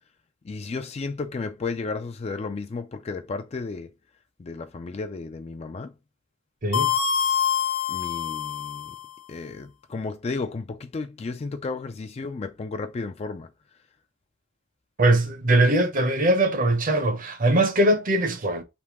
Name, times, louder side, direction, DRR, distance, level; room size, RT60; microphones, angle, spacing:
voice 1, 0.4-3.9 4.4-5.9 7.9-9.0 9.3-13.5, left 4 dB, 30° left, 0.3 m, -33 dB
sound 1, 6.7-9.1, left 8 dB, 85° left, 0.6 m, -25 dB
voice 2, 15.0-18.6, right 1 dB, 40° right, 0.8 m, -21 dB
3.6 x 2.7 x 4.6 m
head